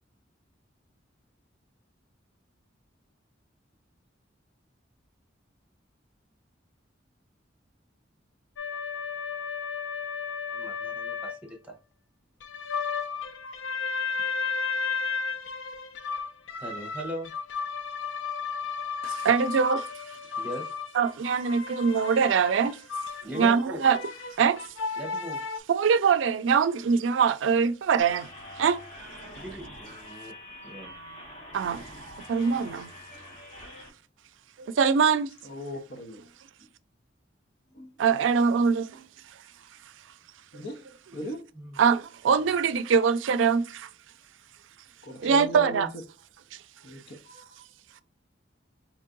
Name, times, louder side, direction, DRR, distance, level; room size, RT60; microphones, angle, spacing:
sound 1, 8.6-11.4 12.4-25.6, left 5 dB, 80° left, 0.6 m, -33 dB
voice 1, 10.5-11.8 16.6-17.3 20.4-20.7 23.2-23.8 25.0-25.4 29.3-30.4 30.6-30.9 41.5-41.8, equal, 5° right, 1.2 m, -39 dB
voice 2, 19.0-19.8 21.0-22.8 23.3-24.0 24.4-24.6 25.7-28.3 28.6-28.8 31.5-31.8 32.3-32.9 34.8-35.3 38.0-39.0 41.8-43.9 45.2-45.9, right 6 dB, 85° right, 0.4 m, -23 dB
sound 2, 28.0-33.9, left 1 dB, 40° left, 1.7 m, -45 dB
voice 3, 35.4-36.3 37.7-38.0 40.5-40.8 41.1-41.5 45.0-46.0 46.8-47.6, equal, 60° left, 0.9 m, -39 dB
4.5 x 3.1 x 2.6 m
head